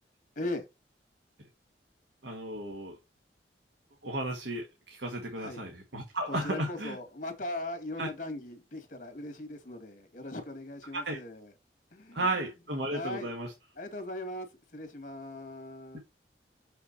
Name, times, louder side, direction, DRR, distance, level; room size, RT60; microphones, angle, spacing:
voice 1, 2.2-3.0 4.0-7.0 8.0-8.1 10.9-11.2 12.1-13.5 15.9-16.0, right 1 dB, 80° right, 1.6 m, -34 dB
voice 2, 6.3-11.5 11.9-12.3 12.9-13.3 13.8-16.0, left 1 dB, 45° left, 2.0 m, -39 dB
6.6 x 5.7 x 4.0 m
head